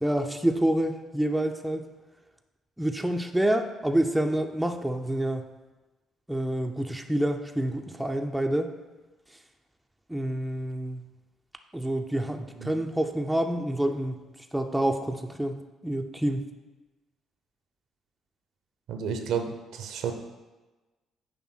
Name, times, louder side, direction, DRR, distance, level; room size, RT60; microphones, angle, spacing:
voice 1, 0.0-1.8 2.8-5.5 6.3-8.7 10.1-11.1 11.7-14.2 14.5-15.5 15.8-16.5, right 1 dB, 5° right, 4 dB, 0.7 m, -27 dB
voice 2, 18.9-20.1, right 7 dB, 60° right, 5 dB, 0.8 m, -31 dB
9.9 x 3.4 x 6.3 m, 1.2 s
figure-of-eight pair, 45°, 0 cm